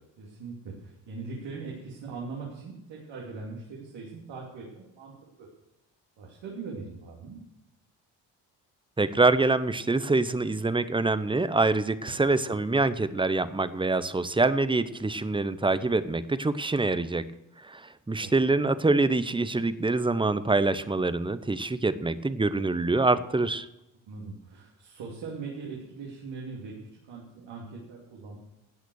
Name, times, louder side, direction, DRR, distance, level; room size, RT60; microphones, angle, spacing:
voice 1, 0.2-5.1 5.4-5.5 6.2-7.4 12.1-12.2 18.2-18.3 24.1-28.4, right 4 dB, 75° right, -2 dB, 2.9 m, -40 dB
voice 2, 9.0-17.2 17.6-23.7, right 3 dB, 10° right, 14 dB, 0.8 m, -25 dB
13.0 x 8.1 x 6.3 m, 0.92 s
supercardioid pair, 70°, 44 cm